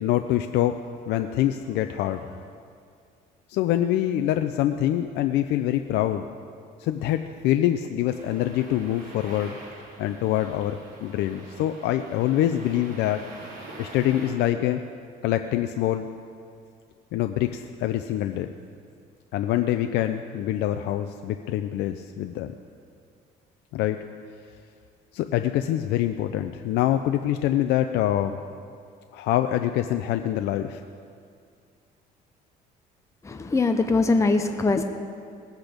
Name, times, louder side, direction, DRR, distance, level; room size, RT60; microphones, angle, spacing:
voice 1, 0.0-2.3 3.5-6.3 6.8-9.6 10.0-13.2 13.8-14.8 15.2-16.1 17.1-18.5 19.3-22.5 23.7-24.0 25.1-28.4 29.1-30.8, left 12 dB, 80° left, 7 dB, 0.5 m, -25 dB
sound 1, 8.1-14.3, right 2 dB, 55° right, 3.6 m, -44 dB
voice 2, 33.2-34.8, left 3 dB, 15° left, 6 dB, 0.7 m, -22 dB
19.5 x 8.2 x 5.1 m, 2.3 s
cardioid pair, 110°, 17 cm